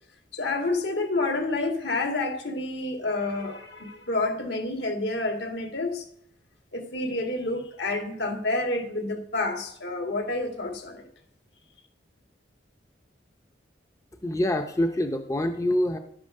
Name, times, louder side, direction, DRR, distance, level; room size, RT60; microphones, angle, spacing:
voice 1, 0.3-6.0 6.7-11.0, left 2 dB, 70° left, 4 dB, 2.0 m, -29 dB
voice 2, 14.2-16.0, left 1 dB, 15° left, 6 dB, 0.6 m, -25 dB
11.0 x 8.7 x 6.5 m, 0.68 s
head